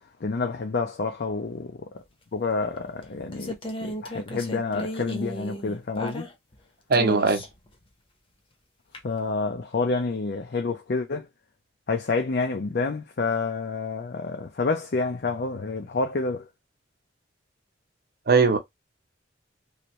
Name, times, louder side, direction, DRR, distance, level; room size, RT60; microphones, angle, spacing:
voice 1, 0.2-1.7 2.3-3.5 3.8-6.3 9.0-11.3 11.9-16.5, left 3 dB, 55° left, 0.5 m, -28 dB
sound 1, 2.6-6.6 6.9-7.7 8.9-9.0, equal, 30° left, 0.8 m, -35 dB
voice 2, 6.9-7.4 18.3-18.6, right 4 dB, 55° right, 0.7 m, -19 dB
3.2 x 2.6 x 3.0 m
head